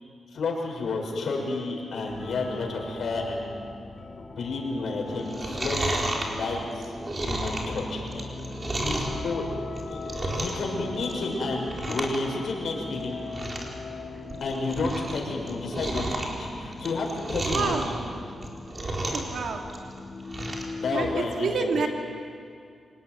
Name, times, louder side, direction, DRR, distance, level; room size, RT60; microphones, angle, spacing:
voice 1, 0.3-3.5 4.3-6.9 7.2-9.4 10.3-13.2 14.4-18.1 20.8-21.7, left 3 dB, 70° left, 0 dB, 6.3 m, -31 dB
sound 1, 2.1-21.2, left 3 dB, 55° left, 2.5 m, -40 dB
Chewing mastication, 5.2-9.2 9.6-10.7 11.0-11.3 11.6-12.2 12.5-12.6 13.0-13.1 13.3-13.7 14.1-15.2 15.5-17.8 18.3-19.4 19.6-20.7 21.1-21.2, right 2 dB, 35° right, 4.5 m, -32 dB
voice 2, 17.5-18.0 19.1-19.6 20.9-21.9, right 4 dB, 80° right, 2 dB, 2.9 m, -28 dB
27.0 x 19.0 x 9.5 m, 2.4 s
cardioid pair, 85°, 0 cm